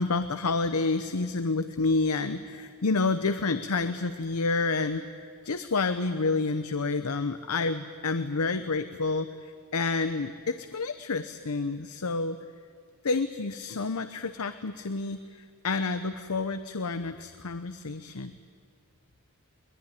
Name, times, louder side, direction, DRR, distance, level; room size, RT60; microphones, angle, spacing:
voice 1, 0.0-12.4 13.0-18.3, left 3 dB, 80° left, 10 dB, 0.8 m, -29 dB
22.5 x 20.0 x 10.0 m, 2.2 s
head